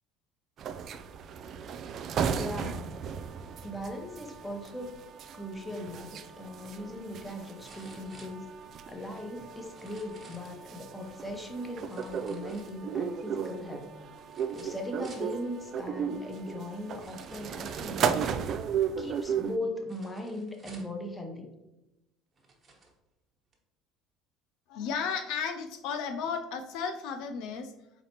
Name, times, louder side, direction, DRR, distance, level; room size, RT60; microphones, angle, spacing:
sound 1, 0.6-19.6, right 7 dB, 50° right, 0.3 m, -35 dB
voice 1, 2.4-3.0 3.6-5.0 5.3-8.5 8.9-14.0 14.5-18.6 19.0-21.5, left 1 dB, 15° left, 4 dB, 0.8 m, -39 dB
sound 2, 7.6-8.9 9.6-10.6 11.9-13.1 14.3-15.3 16.3-16.4 17.0-18.0 19.9-21.0 21.8-21.9 22.4-22.9 23.5-23.6, right 3 dB, 30° right, 1.1 m, -54 dB
voice 2, 24.7-27.7, left 6 dB, 70° left, 7 dB, 0.4 m, -34 dB
4.2 x 4.0 x 2.8 m, 0.94 s
supercardioid pair, 80°, 0 cm